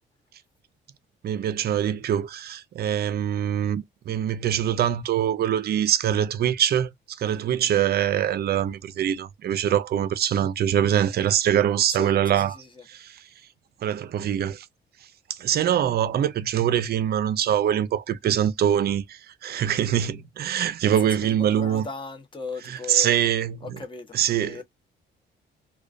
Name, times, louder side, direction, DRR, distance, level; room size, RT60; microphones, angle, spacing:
voice 1, 1.2-13.2 13.8-14.7 15.3-21.8 22.7-23.8 24.1-24.6, right 10 dB, 50° right, 0.4 m, -24 dB
voice 2, 11.9-12.8 20.8-23.2 23.6-24.6, left 4 dB, 25° left, 0.8 m, -38 dB
2.3 x 2.2 x 2.4 m
cardioid pair, 90°, 20 cm